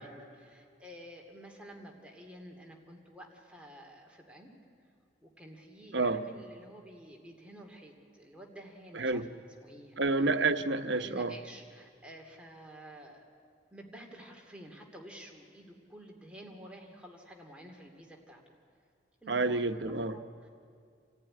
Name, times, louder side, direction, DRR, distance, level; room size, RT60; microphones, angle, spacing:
voice 1, 0.0-4.5 5.2-10.0 11.0-13.3 13.7-18.6 19.2-19.7 20.1-20.5, right 1 dB, 5° right, 2.6 m, -51 dB
voice 2, 5.9-6.2 8.9-9.3 10.0-11.3 19.3-20.2, right 3 dB, 75° right, 1.0 m, -29 dB
28.5 x 14.5 x 9.9 m
head